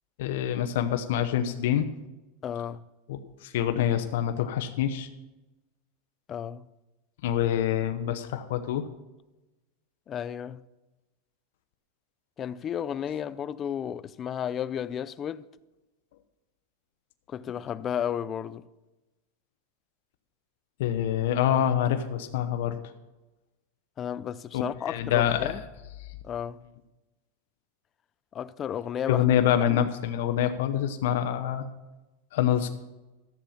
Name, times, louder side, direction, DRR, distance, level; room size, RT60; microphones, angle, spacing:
voice 1, 0.2-1.9 3.1-5.1 7.2-8.9 20.8-22.8 24.5-25.5 26.0-26.1 29.1-31.7 32.3-32.7, left 10 dB, 70° left, 0.9 m, -26 dB
voice 2, 2.4-2.8 6.3-6.7 10.1-10.6 12.4-15.5 17.3-18.7 24.0-25.6 26.2-26.6 28.3-29.2 29.7-29.9, left 9 dB, 25° left, 0.4 m, -33 dB
13.5 x 7.3 x 5.7 m
supercardioid pair, 140°, 0 cm